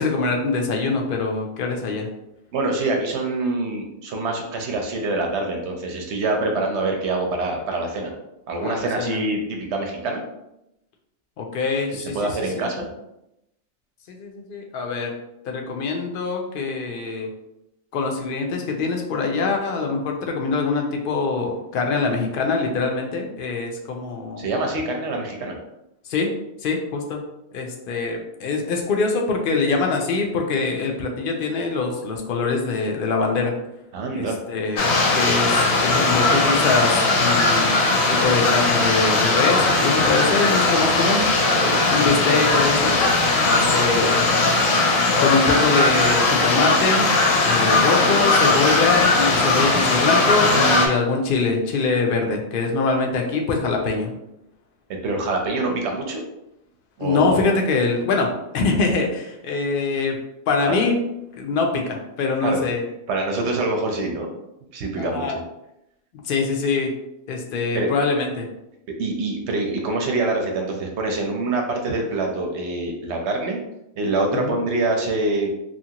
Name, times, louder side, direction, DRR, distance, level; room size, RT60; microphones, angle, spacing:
voice 1, 0.0-2.1 8.6-9.2 11.4-12.7 14.1-15.1 15.4-17.3 17.9-24.4 26.1-26.3 26.6-27.2 27.5-33.5 34.1-37.8 38.1-41.3 41.9-43.0 43.4-44.3 45.2-47.1 47.4-54.1 57.0-58.3 58.5-60.2 60.5-61.0 61.3-62.8 65.0-65.4 66.2-66.9 67.3-68.5 74.3-74.6, left 4 dB, 70° left, 2 dB, 0.5 m, -23 dB
voice 2, 2.5-8.1 8.5-10.2 12.1-12.9 24.4-25.6 33.9-34.4 41.6-41.8 43.6-43.7 48.0-48.1 55.0-56.2 57.0-57.5 60.7-60.8 62.4-62.6 63.1-64.3 64.7-65.4 67.7-67.9 69.0-73.6 74.0-75.5, right 2 dB, 65° right, 2 dB, 0.8 m, -25 dB
sound 1, 34.8-50.9, left 3 dB, 85° left, 1.0 m, -19 dB
2.8 x 2.5 x 2.7 m, 0.86 s
omnidirectional pair, 1.4 m